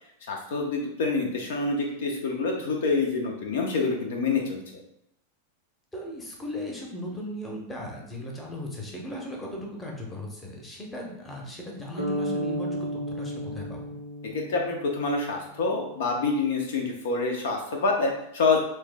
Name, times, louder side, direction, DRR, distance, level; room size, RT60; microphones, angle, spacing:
voice 1, 0.3-4.6 14.3-18.6, left 3 dB, 60° left, 1 dB, 0.5 m, -27 dB
voice 2, 5.9-13.9, left 1 dB, 15° left, -1 dB, 0.8 m, -37 dB
sound 1, 12.0-15.9, equal, 85° left, 0.8 m, -34 dB
3.1 x 2.1 x 3.3 m, 0.79 s
figure-of-eight pair, 90°, 0 cm